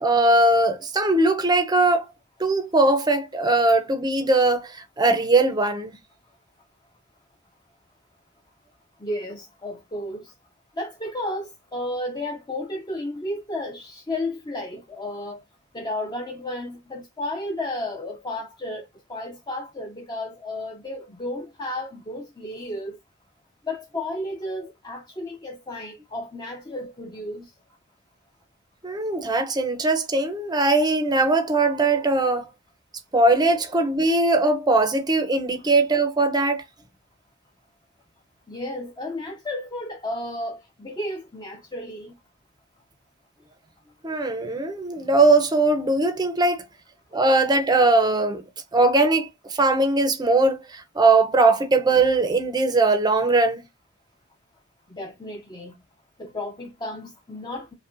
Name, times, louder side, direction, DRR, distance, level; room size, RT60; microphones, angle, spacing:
voice 1, 0.0-2.1 2.4-6.0 28.8-32.5 33.1-36.6 44.0-46.7 47.1-48.4 48.7-49.3 49.6-53.7, right 2 dB, 20° right, 0.6 m, -20 dB
voice 2, 9.0-10.3 10.8-15.4 15.7-23.0 23.7-27.5 38.5-42.1 54.9-55.8 56.2-57.7, left 1 dB, 20° left, 0.7 m, -33 dB
5.2 x 2.2 x 2.5 m
head